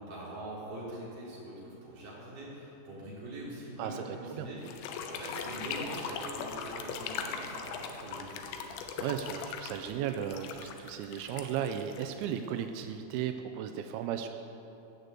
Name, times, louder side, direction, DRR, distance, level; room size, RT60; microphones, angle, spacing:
voice 1, 0.0-8.7, right 1 dB, 45° right, -7 dB, 5.2 m, -43 dB
voice 2, 3.8-4.5 9.0-14.3, right 9 dB, 85° right, 7 dB, 2.2 m, -35 dB
sound 1, 4.6-12.6, left 6 dB, 85° left, 3.1 m, -40 dB
16.5 x 6.8 x 8.2 m, 2.9 s
omnidirectional pair, 5.2 m